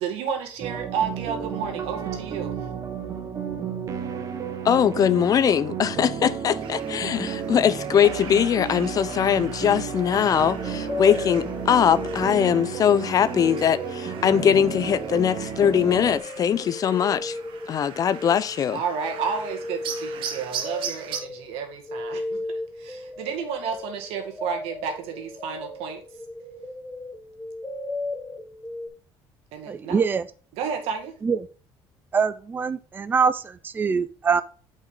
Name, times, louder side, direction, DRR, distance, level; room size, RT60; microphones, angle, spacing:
voice 1, 0.0-2.5 18.7-22.2 23.2-26.0 29.5-30.0 30.6-31.1, right 6 dB, 80° right, 2.0 m, -31 dB
sound 1, 0.6-16.2, right 7 dB, 35° right, 1.4 m, -32 dB
voice 2, 4.6-17.4 17.7-18.8, left 8 dB, 40° left, 0.6 m, -21 dB
sound 2, 6.6-21.2, right 7 dB, 60° right, 1.3 m, -40 dB
sound 3, 10.5-12.9 13.1-28.9, left 2 dB, 10° left, 1.6 m, -36 dB
voice 3, 29.7-30.2 31.2-31.4 32.1-34.4, right 5 dB, 20° right, 0.5 m, -23 dB
8.5 x 5.4 x 3.8 m
cardioid pair, 130°, 10 cm